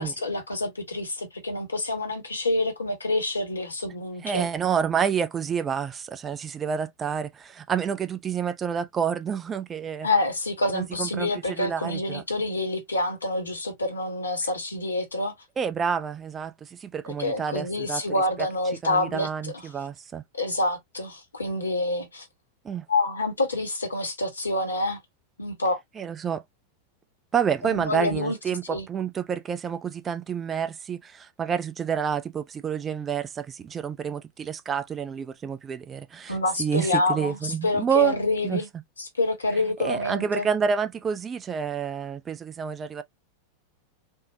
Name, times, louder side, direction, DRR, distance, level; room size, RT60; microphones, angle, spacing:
voice 1, 0.0-4.5 10.0-15.3 17.0-19.5 20.3-22.3 22.9-25.0 25.4-25.8 27.6-28.4 28.7-28.9 36.3-38.7 39.0-40.5, left 2 dB, 75° left, 1.0 m, -27 dB
voice 2, 4.2-10.1 10.7-12.2 15.6-18.0 18.4-18.5 18.8-20.2 22.6-22.9 26.0-26.4 27.3-38.2 38.4-38.6 39.8-43.0, right 7 dB, 20° right, 0.4 m, -29 dB
3.6 x 2.1 x 2.7 m
figure-of-eight pair, 90°, 0 cm